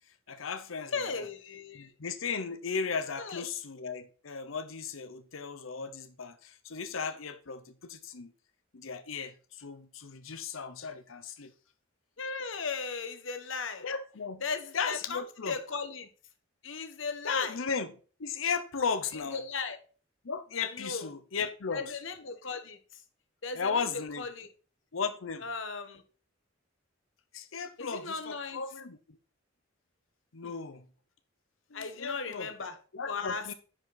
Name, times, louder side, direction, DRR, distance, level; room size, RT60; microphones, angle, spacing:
voice 1, 0.3-1.3 1.7-8.3 8.7-11.5 13.8-14.4 14.7-15.6 17.2-17.9 18.2-19.4 20.2-22.0 23.5-24.3 24.9-25.4 27.3-29.2 30.3-30.8 31.7-32.5 32.9-33.5, left 5 dB, 90° left, 0.8 m, -36 dB
voice 2, 0.9-1.9 3.1-3.4 12.2-13.8 14.4-15.2 15.5-16.1 16.6-17.6 19.3-19.8 20.7-21.1 21.7-22.8 23.4-24.5 25.4-26.0 27.8-28.6 30.4-30.5 31.7-32.7 33.1-33.5, left 5 dB, 70° left, 1.2 m, -36 dB
9.8 x 5.2 x 4.0 m
head